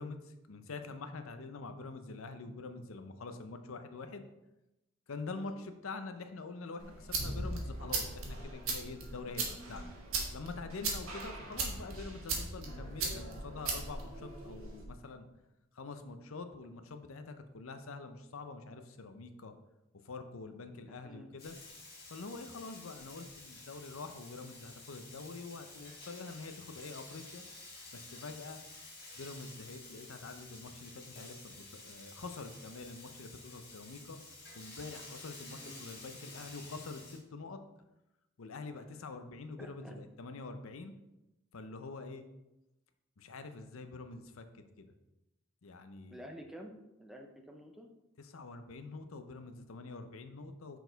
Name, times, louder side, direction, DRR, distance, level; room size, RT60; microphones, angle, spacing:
voice 1, 0.0-4.2 5.1-9.9 10.3-15.3 15.7-19.5 20.0-21.5 22.1-27.4 27.9-28.6 29.2-34.2 34.5-37.6 38.4-40.9 41.5-42.2 43.2-44.9 45.6-46.2 48.2-50.8, left 3 dB, 80° left, 8 dB, 0.6 m, -45 dB
sound 1, 6.8-14.9, right 3 dB, 80° right, 1.4 m, -38 dB
Frying (food), 21.4-37.2, left 2 dB, 45° left, 1.9 m, -51 dB
voice 2, 39.6-40.0 46.1-47.9, equal, ahead, 3 dB, 0.5 m, -50 dB
6.2 x 4.7 x 3.9 m, 0.92 s
head